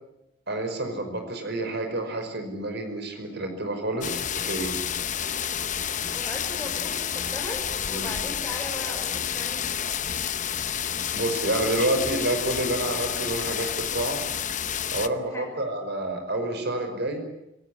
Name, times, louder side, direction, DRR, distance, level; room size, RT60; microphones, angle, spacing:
voice 1, 0.5-4.7 7.9-8.1 11.1-14.2 14.9-17.2, right 1 dB, 55° right, 6 dB, 5.4 m, -29 dB
sound 1, 4.0-15.1, left 9 dB, 40° left, 0.9 m, -30 dB
voice 2, 6.1-9.8 15.3-15.5, left 1 dB, 15° left, 0 dB, 5.7 m, -38 dB
27.5 x 17.5 x 9.9 m, 0.86 s
head